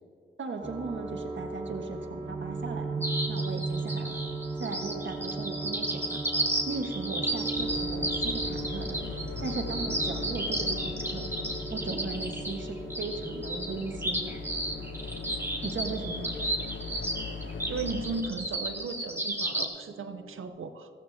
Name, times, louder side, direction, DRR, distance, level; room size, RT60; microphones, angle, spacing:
voice 1, 0.4-4.2 4.6-6.2 6.6-9.0 9.4-11.3 11.7-14.4 15.6-16.3, right 3 dB, 65° right, 3 dB, 1.5 m, -37 dB
sound 1, 0.6-19.1 19.4-20.4, right 3 dB, 35° right, 3.1 m, -38 dB
sound 2, 3.0-19.7, right 1 dB, 10° right, 2.0 m, -33 dB
sound 3, 7.5-18.2, left 5 dB, 65° left, 1.0 m, -39 dB
voice 2, 17.7-20.9, right 4 dB, 80° right, 8 dB, 0.7 m, -36 dB
15.5 x 15.0 x 2.8 m, 2.4 s
cardioid pair, 65°, 21 cm